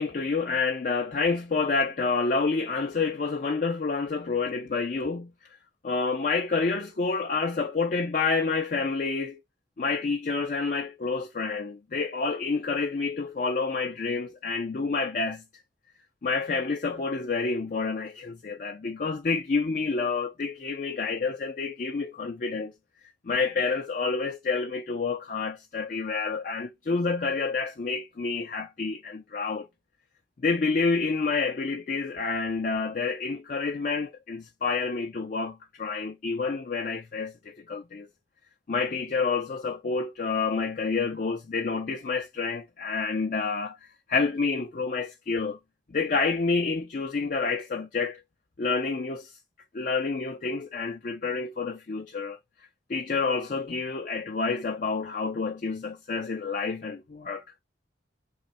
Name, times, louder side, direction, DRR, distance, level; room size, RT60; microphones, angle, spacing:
voice 1, 0.0-5.3 5.8-9.4 9.8-15.4 16.2-22.7 23.2-29.7 30.4-38.1 38.7-43.8 44.1-45.6 45.9-48.2 48.6-49.3 49.7-52.4 52.9-57.4, left 4 dB, 45° left, 0.4 m, -28 dB
3.3 x 3.2 x 4.1 m
head